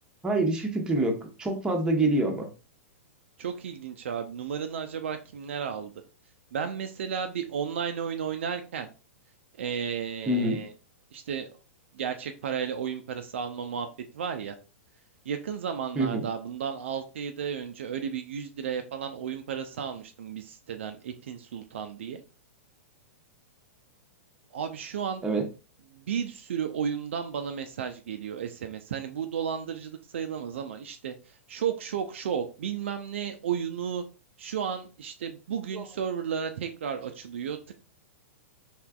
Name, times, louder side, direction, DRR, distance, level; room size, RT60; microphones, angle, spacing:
voice 1, 0.2-2.5 10.3-10.6 16.0-16.2 25.2-25.4 35.7-35.8, right 2 dB, 10° right, 2 dB, 0.9 m, -26 dB
voice 2, 3.4-5.9 6.5-8.9 9.6-10.7 11.1-11.6 11.9-13.9 14.1-14.6 15.2-22.2 24.5-25.2 25.9-34.0 34.4-37.7, right 7 dB, 60° right, 7 dB, 0.4 m, -33 dB
4.5 x 3.2 x 2.4 m, 0.34 s
figure-of-eight pair, 100°, 7 cm